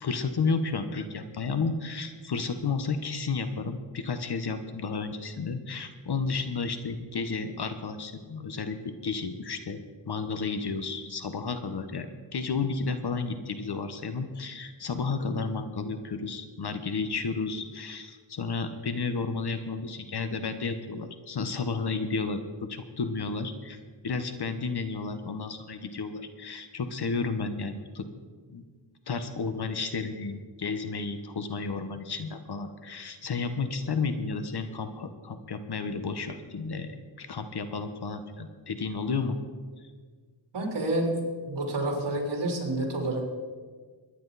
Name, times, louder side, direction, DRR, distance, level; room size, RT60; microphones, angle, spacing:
voice 1, 0.0-9.8 10.1-23.8 24.0-28.1 28.5-28.6 29.1-39.4, left 4 dB, 55° left, 9 dB, 1.3 m, -32 dB
voice 2, 40.5-41.1 41.5-43.3, right 1 dB, 60° right, -1 dB, 3.9 m, -29 dB
22.5 x 10.5 x 4.2 m, 1.5 s
wide cardioid pair, 85°, 47 cm